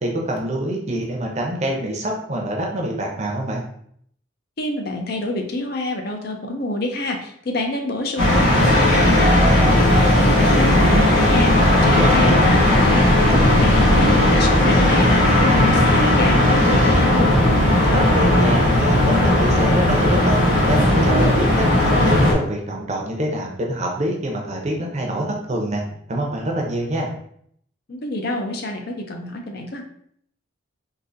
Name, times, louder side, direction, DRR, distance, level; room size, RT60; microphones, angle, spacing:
voice 1, 0.0-3.6 12.0-12.5 17.9-20.4 20.7-25.8 26.1-27.1, right 1 dB, 35° right, 0 dB, 0.6 m, -25 dB
voice 2, 4.6-17.5 27.9-29.8, left 2 dB, 50° left, 3 dB, 0.5 m, -27 dB
sound 1, 8.2-22.3, left 1 dB, 80° left, 1.2 m, -16 dB
3.8 x 2.6 x 2.5 m, 0.66 s
head